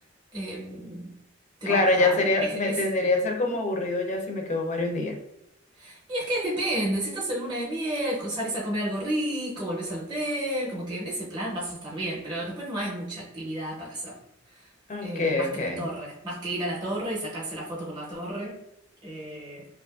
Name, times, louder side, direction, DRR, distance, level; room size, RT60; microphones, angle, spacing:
voice 1, 0.3-1.1 1.6-2.2 2.4-2.8 5.8-14.2 14.5-14.7 15.0-18.6 19.0-19.7, right 1 dB, 20° right, -5 dB, 0.6 m, -31 dB
voice 2, 1.7-5.2 14.9-15.9, left 2 dB, 35° left, 3 dB, 0.4 m, -25 dB
2.5 x 2.3 x 2.3 m, 0.83 s
head